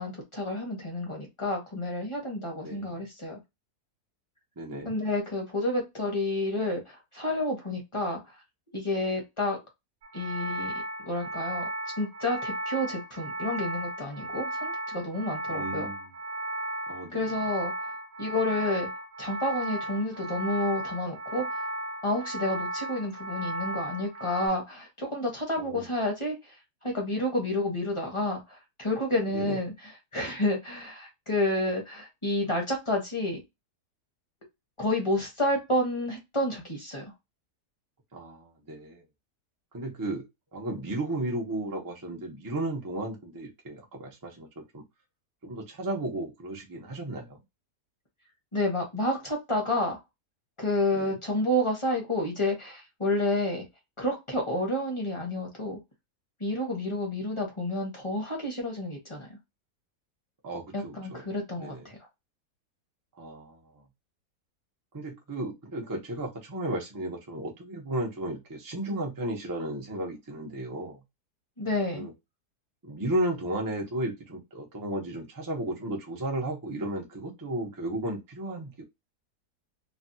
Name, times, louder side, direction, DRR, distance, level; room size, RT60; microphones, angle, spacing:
voice 1, 0.0-3.4 4.8-8.4 8.7-9.6 10.1-10.7 11.0-11.6 12.0-15.9 17.1-17.9 18.2-18.9 19.2-21.7 22.0-26.5 26.8-33.4 34.8-37.0 48.5-50.0 50.6-53.6 54.0-55.8 56.4-59.4 60.7-62.0 71.6-72.1, left 1 dB, 25° left, 1 dB, 0.8 m, -30 dB
voice 2, 2.6-2.9 4.6-4.9 15.5-16.1 16.9-17.3 25.6-25.9 29.3-29.6 38.1-39.0 39.7-40.2 40.5-44.8 45.4-47.4 50.9-51.1 60.4-61.3 61.6-61.9 63.2-63.6 64.9-71.0 71.9-72.1 72.8-78.8, right 1 dB, 25° right, 0 dB, 0.5 m, -34 dB
sound 1, 10.0-24.5, right 1 dB, 65° right, 1.3 m, -35 dB
3.2 x 2.2 x 2.7 m, 0.21 s
omnidirectional pair, 1.7 m